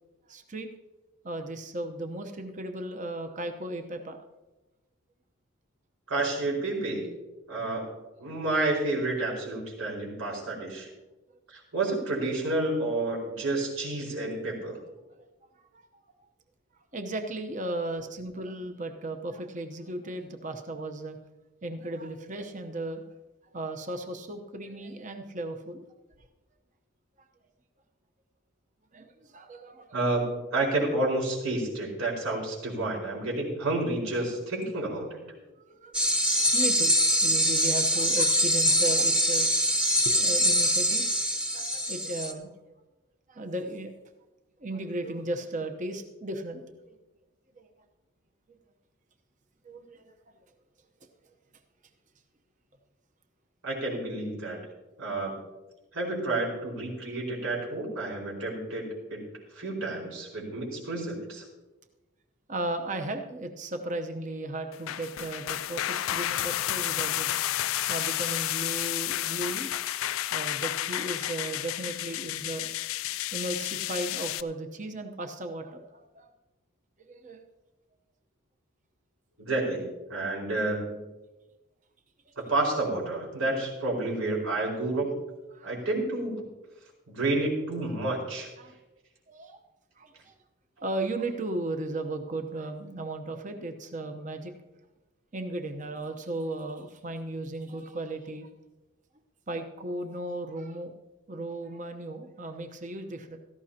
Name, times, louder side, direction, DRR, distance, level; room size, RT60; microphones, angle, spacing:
voice 1, 0.3-0.7 1.2-4.2 15.6-15.9 16.9-21.2 21.6-23.0 23.5-25.9 26.2-26.3 28.9-29.9 35.4-36.0 36.4-36.9 37.2-39.5 40.0-41.1 41.5-42.5 43.3-43.9 44.6-46.9 47.6-47.7 48.5-48.6 49.6-50.1 62.5-67.3 67.9-69.7 70.3-72.7 73.3-76.3 77.0-77.4 85.5-85.8 88.6-88.7 89.3-89.6 90.0-90.3 90.8-94.5 95.3-98.5 99.5-100.9 101.3-103.4, right 2 dB, 35° right, 5 dB, 0.9 m, -36 dB
voice 2, 6.1-7.1 7.5-7.9 8.2-10.9 11.5-14.8 29.9-35.2 53.6-54.6 55.0-55.3 55.9-59.3 59.5-61.4 79.4-79.8 80.1-81.0 82.4-85.1 85.6-86.3 87.1-88.5, right 2 dB, 90° right, -2 dB, 4.8 m, -30 dB
sound 1, 35.9-42.3, equal, 5° right, 0.9 m, -24 dB
sound 2, 64.7-74.4, left 13 dB, 75° left, 0.4 m, -31 dB
17.0 x 14.0 x 2.9 m, 1.1 s
head